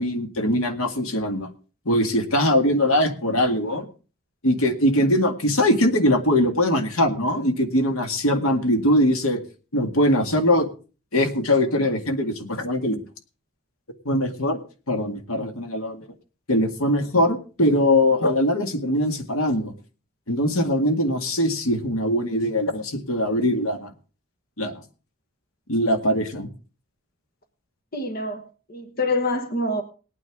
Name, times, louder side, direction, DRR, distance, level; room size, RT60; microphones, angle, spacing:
voice 1, 0.0-1.5 1.9-3.9 4.4-9.4 9.7-10.7 11.1-13.0 14.1-14.6 14.9-16.1 16.5-19.7 20.3-23.9 24.6-24.7 25.7-26.5, left 1 dB, 80° left, 2.0 m, -21 dB
voice 2, 27.9-28.4 28.7-29.8, left 2 dB, 45° left, 1.3 m, -25 dB
20.0 x 9.3 x 3.6 m
head